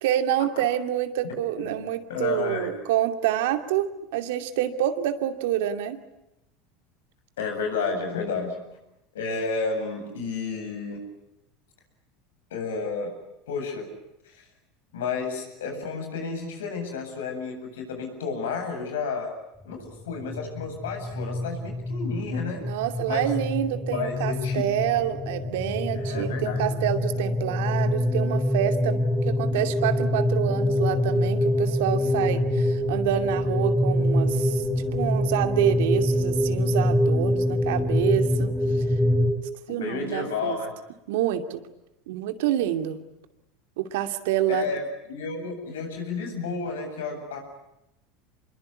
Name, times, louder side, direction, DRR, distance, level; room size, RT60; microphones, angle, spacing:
voice 1, 0.0-6.0 22.6-34.6 34.9-38.5 39.7-40.6 41.1-41.6 42.1-43.0 43.8-44.7, right 11 dB, 75° right, 7 dB, 2.5 m, -27 dB
voice 2, 2.1-2.7 7.4-8.6 9.1-11.0 12.5-13.2 13.5-13.9 14.3-14.5 14.9-19.3 19.6-22.6 23.1-23.3 23.9-24.6 26.0-26.6 39.7-40.7 44.5-47.4, left 4 dB, 85° left, 4 dB, 8.0 m, -31 dB
sound 1, 20.0-39.3, left 1 dB, 10° left, 4.9 m, -25 dB
26.5 x 22.0 x 9.8 m, 0.89 s
hypercardioid pair, 100°, 0 cm